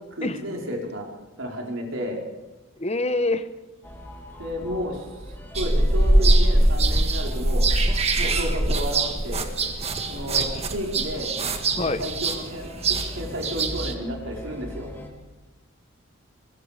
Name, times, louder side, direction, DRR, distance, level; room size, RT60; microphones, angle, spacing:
voice 1, 0.1-1.1 1.4-2.2 4.4-7.6 8.2-9.5 10.0-11.3 11.7-14.9, equal, 65° right, 0 dB, 4.6 m, -32 dB
voice 2, 2.8-3.5 10.4-10.5 11.8-12.1, left 2 dB, 30° left, 12 dB, 1.1 m, -25 dB
sound 1, 3.8-15.1, equal, 10° left, 3.1 m, -41 dB
sound 2, 5.5-13.9, right 2 dB, 30° right, 1.8 m, -22 dB
22.5 x 22.5 x 5.1 m, 1.2 s
head